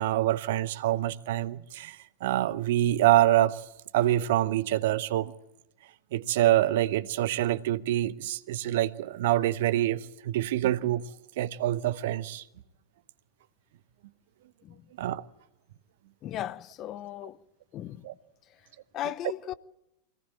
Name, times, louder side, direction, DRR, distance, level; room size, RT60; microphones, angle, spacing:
voice 1, 0.0-3.6 3.9-5.3 6.1-11.1 11.4-12.4 15.0-15.2 18.0-18.1, right 14 dB, 55° right, 0.8 m, -26 dB
voice 2, 16.2-17.4 17.7-18.1 18.9-19.5, left 12 dB, 35° left, 0.8 m, -36 dB
24.5 x 18.0 x 8.9 m
figure-of-eight pair, 90°, 0 cm